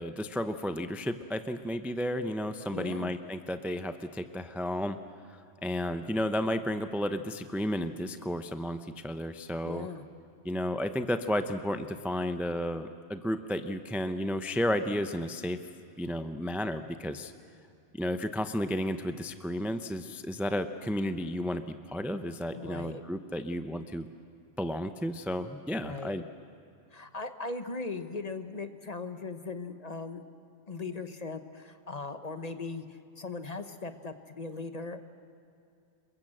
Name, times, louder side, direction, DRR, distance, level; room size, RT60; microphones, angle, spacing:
voice 1, 0.0-5.0 5.3-9.9 10.4-15.6 16.0-17.3 17.9-24.1 24.6-26.2, equal, ahead, 9 dB, 0.6 m, -32 dB
voice 2, 2.7-3.1 9.6-10.0 22.5-23.0 25.8-26.2 26.9-30.2 30.7-35.0, left 3 dB, 35° left, 9 dB, 1.1 m, -39 dB
27.5 x 22.5 x 7.7 m, 2.6 s
omnidirectional pair, 1.2 m